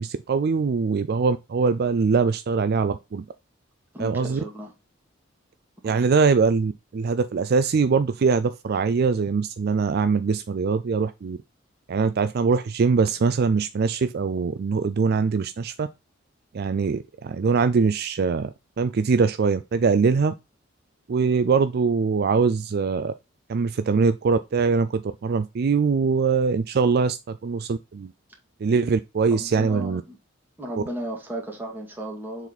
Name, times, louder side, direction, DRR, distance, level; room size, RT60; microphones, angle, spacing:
voice 1, 0.0-3.2 4.0-4.4 5.8-11.4 11.9-15.9 16.5-18.5 18.8-20.3 21.1-23.1 23.5-28.1 28.6-30.0, right 5 dB, 55° right, 0.4 m, -22 dB
voice 2, 3.9-4.7 5.8-6.0 29.3-30.2 30.6-32.5, right 1 dB, 10° right, 2.2 m, -35 dB
7.1 x 4.1 x 4.0 m
head